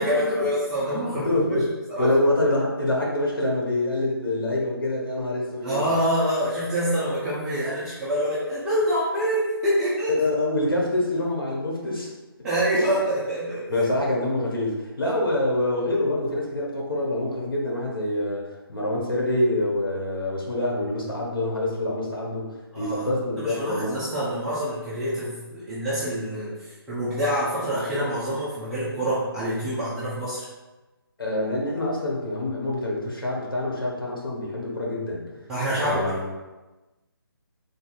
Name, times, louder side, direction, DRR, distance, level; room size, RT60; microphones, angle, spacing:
voice 1, 0.0-1.4 1.9-2.1 5.6-10.1 12.4-13.7 22.7-23.1 23.4-30.5 35.5-36.2, equal, 5° right, -12 dB, 0.3 m, -26 dB
voice 2, 1.1-1.7 2.0-5.9 10.1-12.1 13.7-22.5 22.7-23.9 31.2-35.2 35.8-36.3, left 1 dB, 60° left, -3 dB, 1.2 m, -26 dB
3.5 x 2.4 x 3.9 m, 1.1 s
figure-of-eight pair, 150°, 13 cm